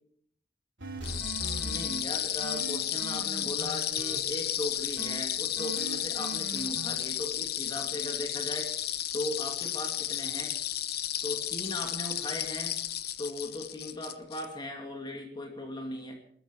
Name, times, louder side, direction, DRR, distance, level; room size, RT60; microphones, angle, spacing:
sound 1, 0.8-2.0 2.4-4.2 5.0-5.2 5.6-6.9, right 3 dB, 75° right, 3.4 m, -40 dB
sound 2, 1.0-14.5, left 11 dB, 55° left, 0.9 m, -33 dB
voice 1, 1.6-8.7 9.1-10.5 11.2-12.8 13.2-16.2, left 1 dB, 25° left, 2 dB, 2.7 m, -38 dB
21.0 x 14.0 x 4.9 m, 0.63 s
head